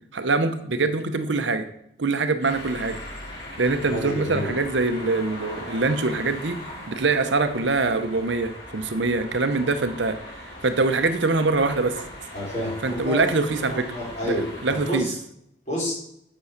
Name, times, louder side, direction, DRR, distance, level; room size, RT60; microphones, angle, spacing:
voice 1, 0.1-1.7 2.0-3.0 3.6-6.6 6.9-12.0 12.8-13.9 14.2-14.4 14.6-15.1, right 3 dB, 70° right, 9 dB, 0.8 m, -24 dB
sound 1, 2.4-14.9, left 1 dB, 55° left, 4.5 m, -39 dB
voice 2, 3.8-4.5 12.3-13.3 13.6-15.1 15.7-15.9, equal, 35° left, -4 dB, 4.2 m, -29 dB
8.2 x 6.2 x 6.6 m, 0.72 s
head